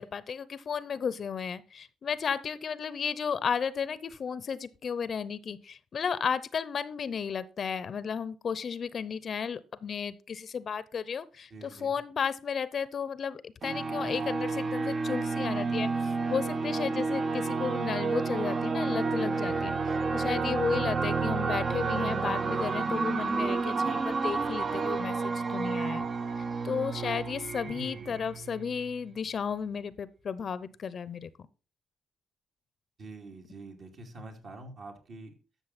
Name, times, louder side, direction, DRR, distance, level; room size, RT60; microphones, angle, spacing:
voice 1, 0.0-26.1 26.3-31.3, left 6 dB, 50° left, 0.7 m, -34 dB
voice 2, 11.5-11.9 20.7-21.1 27.6-28.2 33.0-35.3, right 2 dB, 55° right, 2.8 m, -46 dB
sound 1, 13.6-28.9, right 4 dB, 40° right, 0.7 m, -30 dB
13.0 x 6.4 x 4.2 m
cardioid pair, 90°, 0 cm